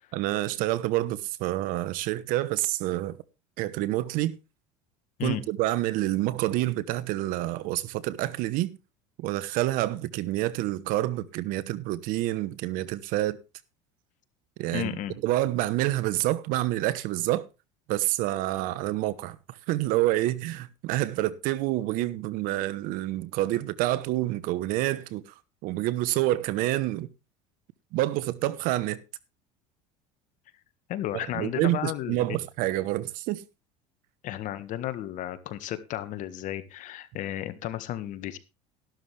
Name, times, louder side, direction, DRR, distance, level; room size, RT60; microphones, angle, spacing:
voice 1, 0.1-3.2 3.6-4.4 5.2-8.8 9.2-13.4 14.6-15.0 15.2-17.4 17.9-25.3 25.6-27.1 27.9-29.0 31.3-33.4, right 16 dB, 65° right, 1.1 m, -28 dB
voice 2, 14.7-15.2 30.9-32.4 34.2-38.4, left 12 dB, 55° left, 1.6 m, -33 dB
13.0 x 12.0 x 3.4 m
supercardioid pair, 100°, 16 cm